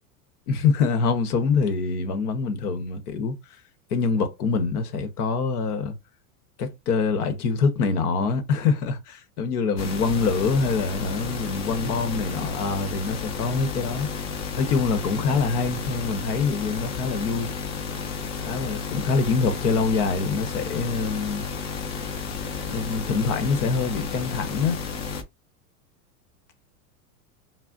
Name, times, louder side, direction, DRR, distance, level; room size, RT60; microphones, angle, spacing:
voice 1, 0.5-3.4 3.9-6.0 6.6-14.1 14.6-17.5 18.4-21.5 22.7-24.8, left 4 dB, 80° left, 0.9 m, -25 dB
sound 1, 9.8-25.2, left 5 dB, 40° left, 0.7 m, -32 dB
2.4 x 2.0 x 3.7 m
hypercardioid pair, 120°, 45 cm